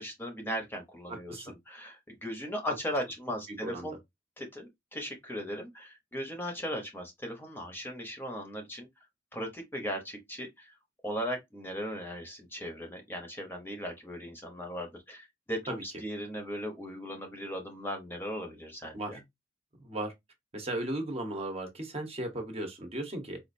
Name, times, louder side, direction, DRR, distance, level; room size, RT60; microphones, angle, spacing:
voice 1, 0.0-4.0 4.4-8.9 9.3-10.7 11.0-19.2, equal, 10° left, 0.8 m, -38 dB
voice 2, 1.1-1.5 2.7-2.8 3.5-3.9 15.7-15.8 18.9-19.2 19.8-20.1 20.5-23.4, right 1 dB, 35° right, 0.9 m, -36 dB
4.2 x 2.4 x 2.5 m
head